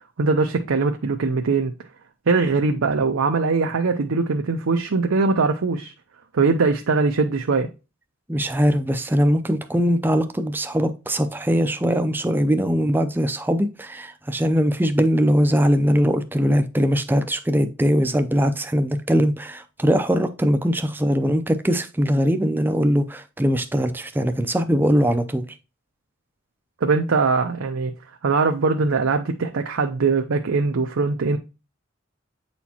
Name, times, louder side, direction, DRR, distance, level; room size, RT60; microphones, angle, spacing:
voice 1, 0.2-1.7 2.3-5.9 6.3-7.7 26.8-27.9 28.2-31.4, right 4 dB, 90° right, 0.6 m, -21 dB
voice 2, 8.3-25.4, equal, 10° right, 0.4 m, -21 dB
8.1 x 4.3 x 2.8 m
head